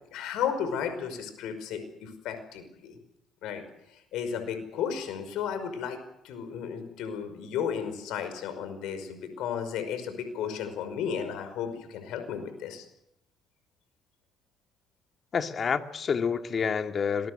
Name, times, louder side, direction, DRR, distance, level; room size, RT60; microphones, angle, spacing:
voice 1, 0.1-3.0 3.4-3.6 4.1-12.9, left 7 dB, 75° left, 9 dB, 5.5 m, -34 dB
voice 2, 15.3-17.3, left 6 dB, 50° left, 7 dB, 2.2 m, -28 dB
26.5 x 21.0 x 8.1 m, 0.80 s
hypercardioid pair, 50°, 0 cm